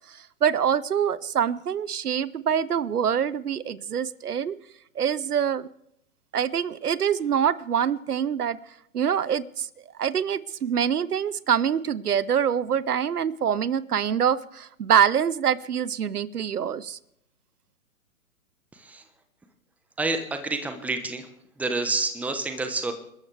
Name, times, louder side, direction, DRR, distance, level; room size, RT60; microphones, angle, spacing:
voice 1, 0.1-4.6 5.0-5.7 6.3-8.6 8.9-9.7 10.0-17.0, right 8 dB, 85° right, 19 dB, 0.8 m, -25 dB
voice 2, 18.7-19.0 20.0-21.3 21.6-22.9, right 3 dB, 5° right, 7 dB, 1.0 m, -28 dB
29.0 x 13.0 x 3.4 m, 0.76 s
hypercardioid pair, 130°, 45 cm